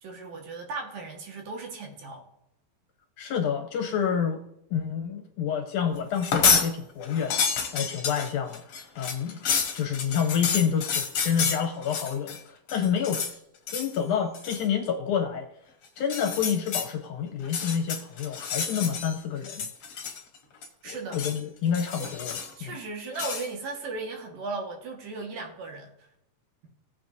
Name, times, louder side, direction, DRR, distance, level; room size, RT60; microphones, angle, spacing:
voice 1, 0.0-2.2 20.8-21.3 22.0-22.1 22.6-26.0, right 3 dB, 70° right, 1 dB, 3.3 m, -36 dB
voice 2, 3.2-4.4 4.7-7.5 7.7-8.6 9.0-9.4 9.7-13.2 13.7-15.5 16.0-19.7 20.9-22.4 22.6-22.7, left 7 dB, 70° left, 4 dB, 2.0 m, -28 dB
sound 1, 6.1-6.7 7.0-12.4 12.7-13.3 13.7-14.0 14.3-14.7 16.0-16.9 17.4-19.2 19.4-20.4 20.6-21.4 21.7-22.6 23.2-23.5, left 5 dB, 55° left, 1.7 m, -29 dB
17.5 x 7.3 x 2.7 m, 0.81 s
omnidirectional pair, 4.1 m